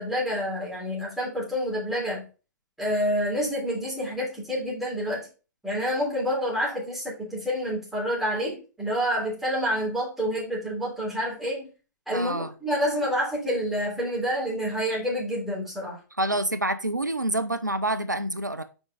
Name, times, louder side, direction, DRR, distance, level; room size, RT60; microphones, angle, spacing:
voice 1, 0.0-2.3 2.8-5.3 5.6-11.7 12.1-16.0, equal, ahead, 3.4 m, -28 dB
voice 2, 12.1-12.5 16.2-18.6, right 1 dB, 90° right, 0.5 m, -27 dB
5.3 x 5.1 x 4.3 m
figure-of-eight pair, 105°, 10 cm